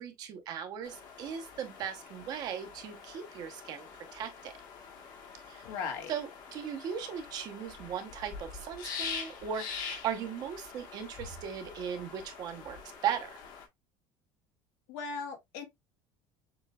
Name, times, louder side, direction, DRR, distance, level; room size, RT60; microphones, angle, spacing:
voice 1, 0.0-4.5 5.5-5.6 6.1-13.4, right 8 dB, 40° right, 1.0 m, -38 dB
sound 1, 0.8-13.7, left 6 dB, 40° left, 1.3 m, -45 dB
voice 2, 5.6-6.1 14.9-15.6, left 5 dB, 75° left, 1.8 m, -37 dB
7.0 x 3.1 x 2.3 m
cardioid pair, 175°, 10 cm